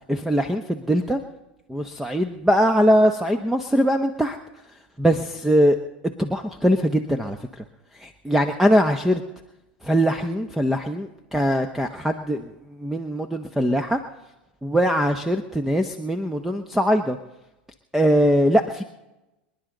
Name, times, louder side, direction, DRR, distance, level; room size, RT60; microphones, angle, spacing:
voice 1, 0.1-1.2 1.7-4.4 5.0-5.8 6.2-7.4 8.0-9.2 9.8-12.5 12.8-14.0 14.6-17.2 17.9-18.8, equal, 5° right, 7 dB, 1.0 m, -21 dB
26.5 x 10.5 x 3.9 m, 0.98 s
hypercardioid pair, 95°, 6 cm